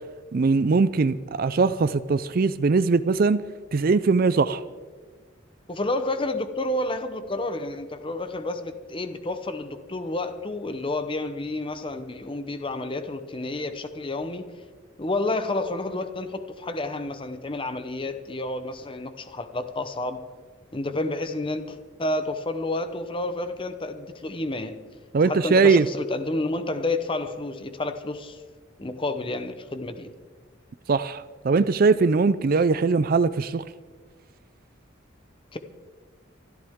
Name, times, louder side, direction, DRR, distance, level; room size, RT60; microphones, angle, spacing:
voice 1, 0.3-3.4 3.7-4.6 25.1-25.9 30.9-33.6, right 4 dB, 45° right, 0.4 m, -21 dB
voice 2, 5.7-14.5 15.0-20.3 20.7-24.8 25.2-28.4 28.8-30.1 35.5-35.6, left 2 dB, 25° left, 0.9 m, -30 dB
24.5 x 13.0 x 3.6 m
head